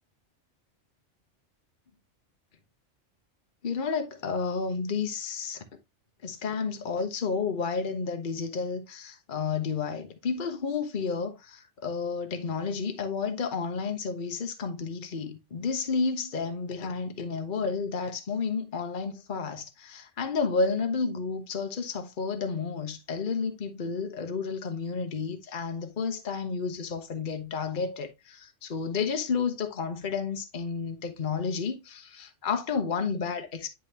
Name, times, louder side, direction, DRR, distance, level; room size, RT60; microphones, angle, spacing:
voice 1, 3.6-5.6 6.2-33.7, left 5 dB, 45° left, 1.1 m, -31 dB
9.9 x 3.8 x 2.8 m
omnidirectional pair, 1.2 m